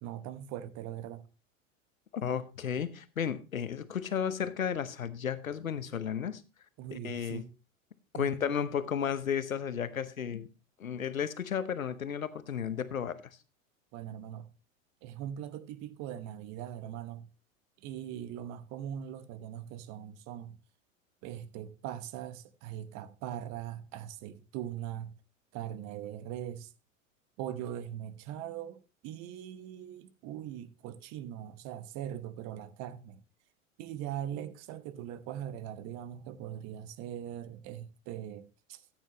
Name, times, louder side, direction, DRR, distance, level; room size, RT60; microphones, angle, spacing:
voice 1, 0.0-1.3 6.8-7.5 8.1-8.4 13.9-14.5 15.0-17.3 17.8-20.6 21.2-25.2 25.5-26.7 27.4-33.2 33.8-38.8, right 10 dB, 40° right, 1.1 m, -41 dB
voice 2, 2.1-6.4 6.9-7.4 8.1-10.5 10.8-13.2, left 8 dB, 85° left, 1.0 m, -33 dB
13.5 x 9.1 x 3.0 m
figure-of-eight pair, 90°, 40 cm